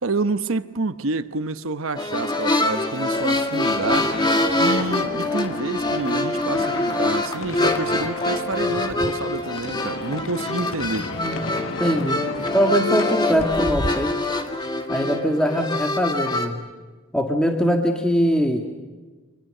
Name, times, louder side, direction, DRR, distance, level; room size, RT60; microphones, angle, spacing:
voice 1, 0.0-4.1 4.5-11.1, right 3 dB, 70° right, 1.0 m, -28 dB
sound 1, 2.0-16.5, left 2 dB, 20° left, 2.0 m, -24 dB
sound 2, 3.1-13.9, left 3 dB, 65° left, 1.2 m, -34 dB
voice 2, 11.8-12.3 12.5-14.2 14.9-16.7 17.1-18.7, equal, 5° left, 1.9 m, -22 dB
30.0 x 25.5 x 6.7 m
head